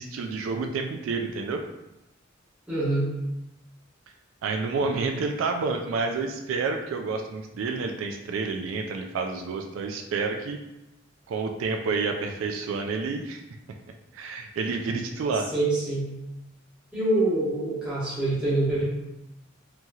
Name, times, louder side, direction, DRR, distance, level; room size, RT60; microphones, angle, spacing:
voice 1, 0.0-1.6 4.4-10.6 11.3-13.4 14.1-15.5, right 4 dB, 80° right, 4 dB, 0.3 m, -29 dB
voice 2, 2.7-3.1 15.5-16.1 16.9-18.8, right 2 dB, 5° right, -10 dB, 1.1 m, -25 dB
2.8 x 2.7 x 2.3 m, 0.91 s
head